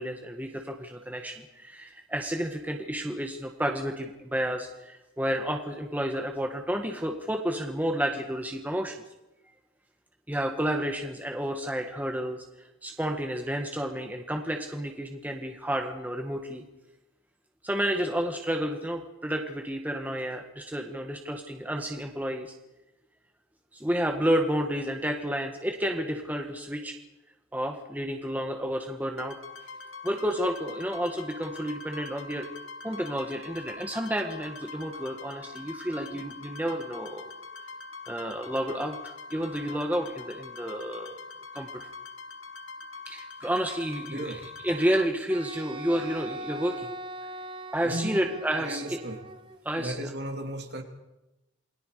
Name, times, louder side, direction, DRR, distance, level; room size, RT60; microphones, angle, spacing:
voice 1, 0.0-8.9 10.3-12.4 12.8-16.6 17.6-22.5 23.7-27.0 27.5-29.4 30.0-32.5 32.8-37.3 38.1-41.1 41.5-41.7 43.1-46.9 47.7-49.0 49.6-50.1, equal, 10° right, 3 dB, 1.6 m, -31 dB
sound 1, 29.2-45.1, left 4 dB, 80° left, 2.6 m, -43 dB
voice 2, 44.1-44.4 47.8-48.2 48.6-49.2 49.8-50.8, right 1 dB, 50° right, 4 dB, 3.1 m, -35 dB
Wind instrument woodwind instrument, 45.3-49.6, right 1 dB, 25° right, 1.0 m, -40 dB
28.5 x 22.0 x 5.0 m, 0.95 s
head